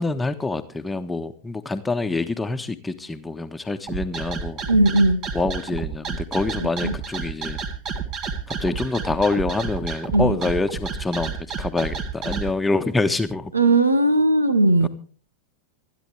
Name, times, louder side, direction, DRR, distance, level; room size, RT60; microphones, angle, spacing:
voice 1, 0.0-4.6 5.3-7.6 8.5-13.5 14.8-14.9, left 3 dB, 10° left, 8 dB, 1.4 m, -26 dB
sound 1, 3.9-12.5, right 5 dB, 35° right, 2.0 m, -30 dB
voice 2, 4.7-5.2 6.8-6.9 10.1-10.3 13.5-14.9, right 2 dB, 80° right, 13 dB, 1.5 m, -17 dB
26.0 x 10.5 x 3.4 m, 0.40 s
figure-of-eight pair, 90°, 0 cm